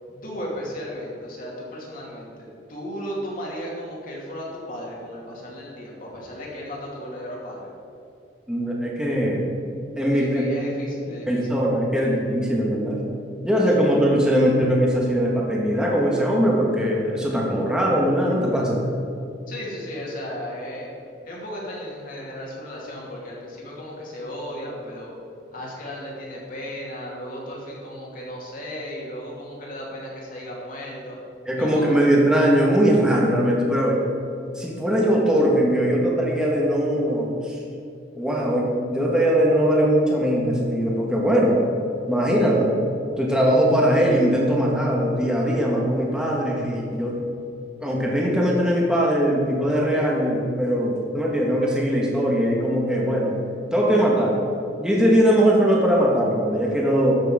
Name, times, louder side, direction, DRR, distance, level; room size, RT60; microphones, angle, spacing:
voice 1, 0.2-7.6 10.1-11.5 19.5-20.9 21.2-25.1 25.5-31.2 31.6-31.9, equal, 50° left, -4 dB, 2.6 m, -35 dB
voice 2, 8.5-9.5 10.0-10.4 11.3-13.0 13.4-18.8 31.5-34.0 34.5-37.6 38.1-41.6 42.1-42.7 43.2-47.2 47.8-53.3 53.7-54.5 54.8-57.2, equal, 5° right, -3 dB, 1.5 m, -20 dB
13.0 x 6.7 x 5.0 m, 2.6 s
head